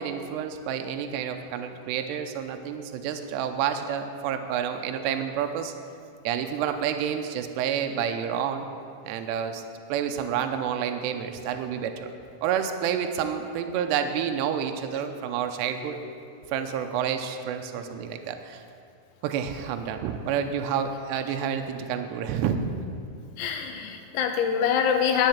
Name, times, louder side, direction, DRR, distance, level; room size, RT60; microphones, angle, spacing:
voice 1, 0.0-5.7 6.2-8.7 9.0-9.6 9.9-12.1 12.4-16.0 16.5-18.6 19.2-22.7, right 8 dB, 80° right, 6 dB, 2.7 m, -29 dB
voice 2, 23.4-25.3, left 7 dB, 80° left, 5 dB, 2.8 m, -25 dB
11.0 x 7.4 x 7.2 m, 2.4 s
omnidirectional pair, 5.2 m